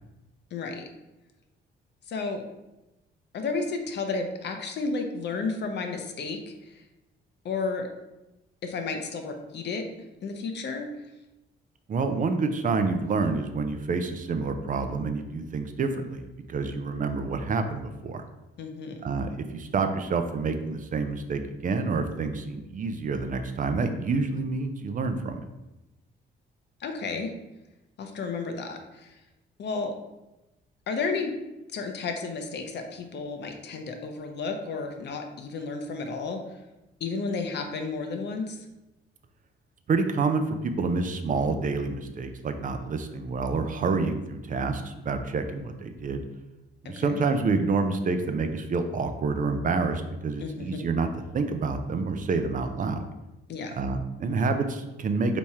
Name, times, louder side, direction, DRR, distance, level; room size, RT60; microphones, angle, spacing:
voice 1, 0.5-0.8 2.1-2.4 3.3-6.8 7.4-7.9 8.6-9.9 10.2-10.9 18.6-19.0 26.8-27.3 28.0-29.2 29.6-29.9 30.9-31.3 31.7-36.4 37.0-38.6 46.8-47.2 50.4-50.8 53.5-53.8, left 4 dB, 60° left, 5 dB, 0.7 m, -32 dB
voice 2, 11.9-18.2 19.0-25.4 39.9-46.2 46.9-51.1 51.3-53.0 53.8-55.4, right 4 dB, 40° right, 7 dB, 0.5 m, -28 dB
3.5 x 3.0 x 4.2 m, 0.98 s
cardioid pair, 90°, 20 cm